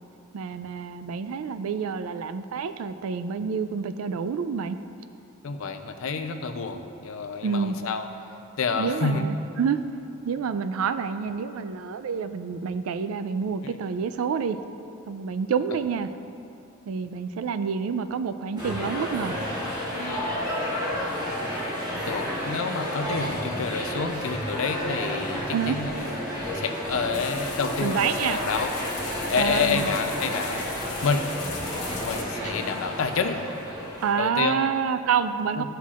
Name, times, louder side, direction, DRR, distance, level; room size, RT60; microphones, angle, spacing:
voice 1, 0.3-4.8 7.4-7.7 8.8-9.8 10.3-14.6 15.1-16.1 16.9-19.4 25.5-25.8 27.8-28.4 29.4-29.9 31.9-32.0 32.4-32.5 34.0-35.6, right 6 dB, 80° right, 11 dB, 0.3 m, -28 dB
voice 2, 5.4-8.1 8.6-9.3 13.6-13.7 19.9-20.3 22.1-26.1 26.5-28.7 29.3-30.7 31.0-31.3 31.9-33.4 34.2-34.7 35.6-35.7, left 4 dB, 70° left, 7 dB, 0.5 m, -28 dB
sound 1, 18.6-34.1, equal, 20° right, 1.5 m, -31 dB
sound 2, 27.1-32.2, left 5 dB, 85° left, 1.0 m, -39 dB
13.0 x 5.6 x 2.5 m, 2.7 s
head